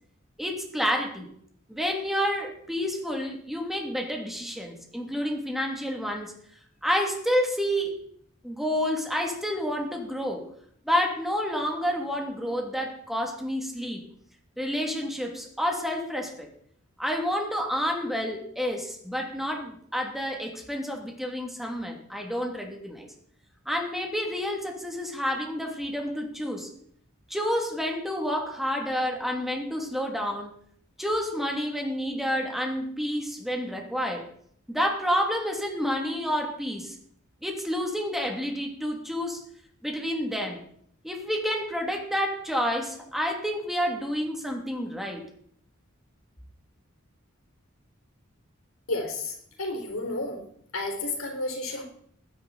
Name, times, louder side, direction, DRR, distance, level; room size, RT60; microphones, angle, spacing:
voice 1, 0.4-1.3 1.7-6.3 6.8-8.0 8.4-10.5 10.8-14.0 14.6-16.5 17.0-23.1 23.7-26.7 27.3-30.5 31.0-34.3 34.7-37.0 37.4-39.4 39.8-40.6 41.0-45.2, equal, ahead, 1 dB, 2.8 m, -29 dB
voice 2, 48.9-50.4 50.7-51.8, left 2 dB, 80° left, 2 dB, 4.0 m, -31 dB
20.5 x 10.5 x 4.3 m, 0.64 s
head